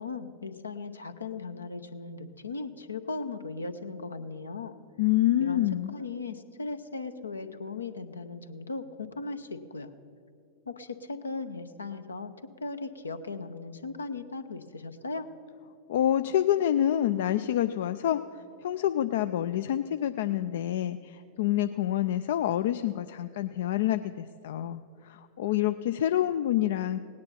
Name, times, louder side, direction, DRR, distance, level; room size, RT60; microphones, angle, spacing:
voice 1, 0.0-4.8 5.4-5.7 5.9-9.9 10.7-12.3 12.6-15.3, left 3 dB, 75° left, 10 dB, 0.7 m, -37 dB
voice 2, 5.0-5.9 15.9-18.2 18.6-27.0, left 12 dB, 55° left, 10 dB, 0.3 m, -27 dB
18.0 x 9.7 x 5.6 m, 2.6 s
figure-of-eight pair, 90°, 0 cm